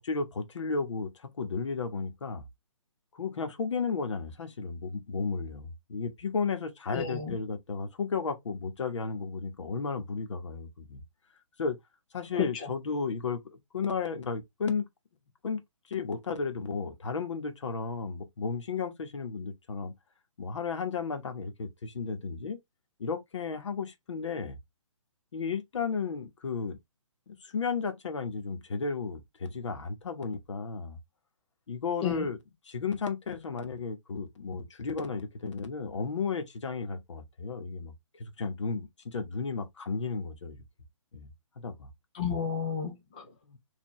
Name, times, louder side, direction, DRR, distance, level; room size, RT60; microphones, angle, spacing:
voice 1, 0.0-2.4 3.1-11.0 11.6-11.8 12.1-14.9 15.4-15.6 15.9-19.9 20.4-22.6 23.0-24.6 25.3-26.8 27.3-31.0 31.7-32.4 32.7-40.6 41.1-41.3 41.6-41.9 43.4-43.6, left 5 dB, 60° left, 1.3 m, -34 dB
voice 2, 6.9-7.4 12.3-12.7 32.0-32.3 42.1-43.2, left 7 dB, 15° left, 0.4 m, -32 dB
4.6 x 2.8 x 3.1 m
hypercardioid pair, 170°, 17 cm